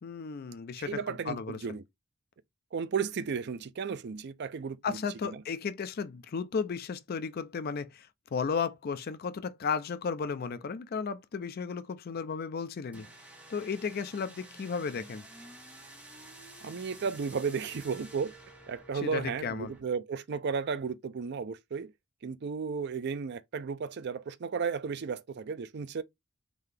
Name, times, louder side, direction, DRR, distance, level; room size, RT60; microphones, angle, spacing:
voice 1, 0.0-1.6 4.8-13.1 13.5-15.2 19.0-19.7, left 5 dB, 45° left, 0.4 m, -34 dB
voice 2, 0.8-1.8 2.7-5.4 16.6-18.3 18.7-21.9 22.2-26.0, right 5 dB, 50° right, 0.4 m, -34 dB
sound 1, 12.9-19.8, right 1 dB, 5° right, 1.1 m, -50 dB
3.8 x 2.7 x 3.3 m
head